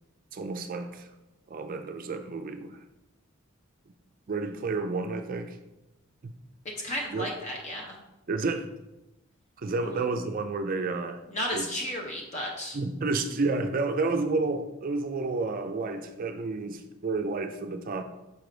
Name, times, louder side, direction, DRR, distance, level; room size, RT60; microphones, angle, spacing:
voice 1, 0.3-1.1 1.5-2.8 4.3-5.6 6.2-6.3 7.1-7.3 8.3-8.7 9.6-11.2 11.5-11.7 12.7-18.0, right 3 dB, 45° right, 0.4 m, -30 dB
voice 2, 6.8-8.0 9.8-10.0 11.3-12.8, left 1 dB, 35° left, 0.8 m, -33 dB
5.3 x 4.9 x 3.9 m
head